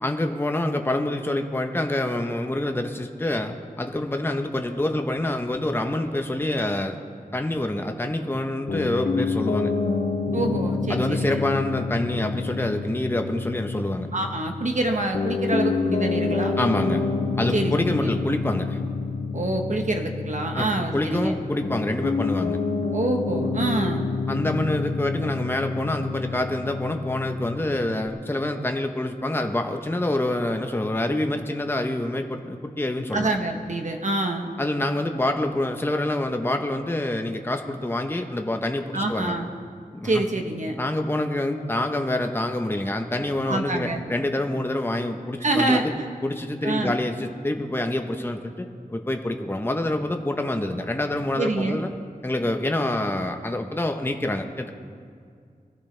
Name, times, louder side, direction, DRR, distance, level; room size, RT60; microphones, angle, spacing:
voice 1, 0.0-7.0 7.3-9.7 10.9-14.1 16.6-17.0 17.4-18.8 20.5-20.7 20.9-22.6 24.3-33.3 34.6-39.4 39.9-40.2 40.8-45.9 46.2-51.9 52.2-54.7, left 1 dB, 15° left, 4 dB, 0.9 m, -26 dB
Piano, 8.7-28.1, left 4 dB, 85° left, 1.6 m, -28 dB
voice 2, 10.3-11.4 14.1-16.6 17.5-17.7 18.0-18.1 19.3-21.3 22.9-24.1 33.1-34.5 38.9-39.5 40.0-40.8 43.5-44.0 45.4-46.1 46.6-46.9 51.4-51.8, right 2 dB, 55° right, 3 dB, 1.1 m, -26 dB
22.0 x 14.0 x 3.3 m, 2.2 s
wide cardioid pair, 75°, 15 cm